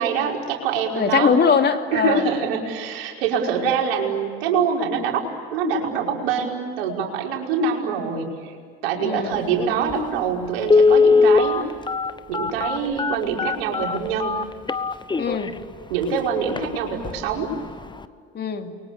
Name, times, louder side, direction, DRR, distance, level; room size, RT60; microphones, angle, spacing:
voice 1, 0.0-1.3 1.9-8.5 8.8-11.6 12.3-14.4 15.9-17.5, right 6 dB, 75° right, 0 dB, 5.4 m, -24 dB
voice 2, 0.9-2.3 9.0-9.4 15.2-15.5 18.3-18.7, left 6 dB, 35° left, 5 dB, 2.9 m, -21 dB
Telephone, 9.9-10.0 10.6-15.5 16.0-16.1 16.5-16.7 17.0-17.3 17.6-17.7, left 4 dB, 15° left, 1.1 m, -19 dB
30.0 x 23.5 x 8.5 m, 2.2 s
hypercardioid pair, 75°, 30 cm